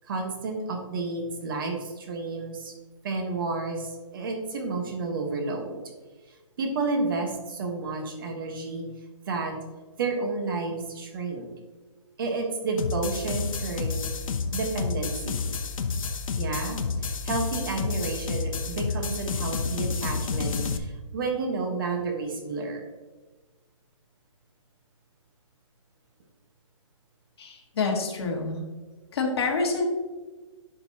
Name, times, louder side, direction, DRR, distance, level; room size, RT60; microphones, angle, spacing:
voice 1, 0.1-2.7 3.0-5.8 6.6-8.8 9.3-9.5 10.0-11.5 12.2-14.1 14.5-15.4 16.4-22.8, right 3 dB, 40° right, 3 dB, 1.2 m, -31 dB
sound 1, 12.8-20.8, left 4 dB, 80° left, 0.7 m, -30 dB
voice 2, 27.4-28.6 29.1-29.8, left 4 dB, 50° left, 1 dB, 1.5 m, -27 dB
10.5 x 5.2 x 2.8 m, 1.3 s
hypercardioid pair, 170°, 17 cm